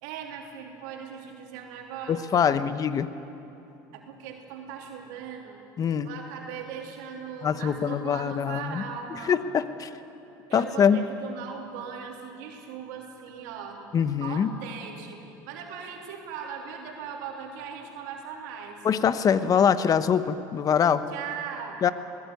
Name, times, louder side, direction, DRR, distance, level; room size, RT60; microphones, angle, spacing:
voice 1, 0.0-2.2 3.9-5.6 6.0-9.5 10.5-13.8 14.2-18.8 21.1-21.8, right 7 dB, 80° right, 1 dB, 3.3 m, -39 dB
voice 2, 2.1-3.1 5.8-6.1 7.4-8.8 9.3-9.9 10.5-11.0 13.9-14.5 18.8-21.0 21.8-21.9, left 7 dB, 40° left, 13 dB, 1.1 m, -23 dB
20.0 x 18.0 x 9.6 m, 3.0 s
supercardioid pair, 85°, 9 cm